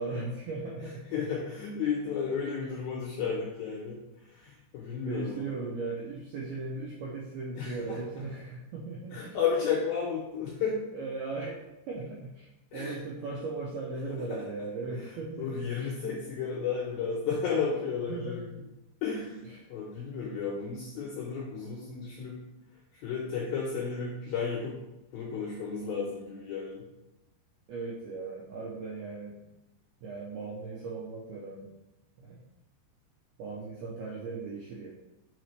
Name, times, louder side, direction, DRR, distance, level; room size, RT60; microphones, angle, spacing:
voice 1, 0.0-1.2 5.0-9.4 10.9-15.9 18.1-18.4 19.5-19.7 27.7-29.4 30.0-31.7 32.2-32.4 33.4-34.9, right 3 dB, 80° right, -3 dB, 2.2 m, -38 dB
voice 2, 0.8-4.0 4.3-5.7 7.6-8.0 9.1-10.8 12.7-12.9 14.3-14.4 15.4-18.6 19.0-19.4 19.7-22.4 22.9-24.8 25.1-26.8, left 6 dB, 80° left, -3 dB, 2.1 m, -33 dB
7.2 x 4.9 x 3.2 m, 0.94 s
omnidirectional pair, 5.4 m